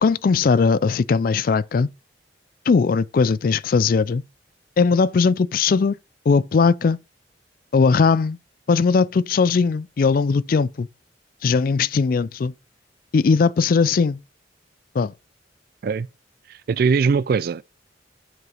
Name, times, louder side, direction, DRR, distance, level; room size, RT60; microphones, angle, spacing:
voice 1, 0.0-1.9 2.7-4.2 4.8-6.0 6.3-7.0 7.7-8.4 8.7-10.9 11.4-12.5 13.1-14.2 14.9-15.1, left 5 dB, 50° left, 0.4 m, -19 dB
voice 2, 16.5-17.7, right 5 dB, 55° right, 0.3 m, -21 dB
7.9 x 4.8 x 5.4 m
head